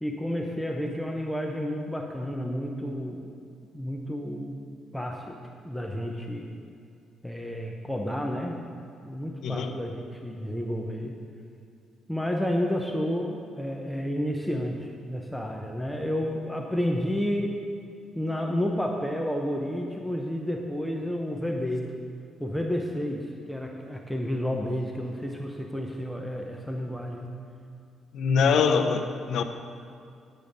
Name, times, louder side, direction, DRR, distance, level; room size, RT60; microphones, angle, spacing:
voice 1, 0.0-3.3 3.7-5.4 5.6-6.5 7.2-8.6 9.0-11.2 12.1-17.6 18.2-21.9 22.4-27.3 28.4-28.6, equal, ahead, 1 dB, 0.6 m, -31 dB
voice 2, 28.1-29.4, left 6 dB, 65° left, 6 dB, 0.6 m, -23 dB
9.1 x 8.3 x 5.2 m, 2.4 s
cardioid pair, 155°, 0 cm